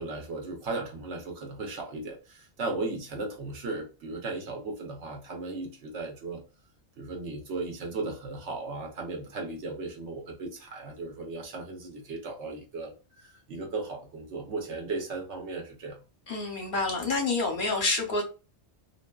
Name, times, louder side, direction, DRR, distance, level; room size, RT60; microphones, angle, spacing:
voice 1, 0.0-6.4 7.0-16.0, right 3 dB, 85° right, 1 dB, 1.1 m, -36 dB
voice 2, 16.3-18.2, left 3 dB, 50° left, 1 dB, 0.8 m, -28 dB
2.6 x 2.5 x 2.2 m, 0.32 s
omnidirectional pair, 1.2 m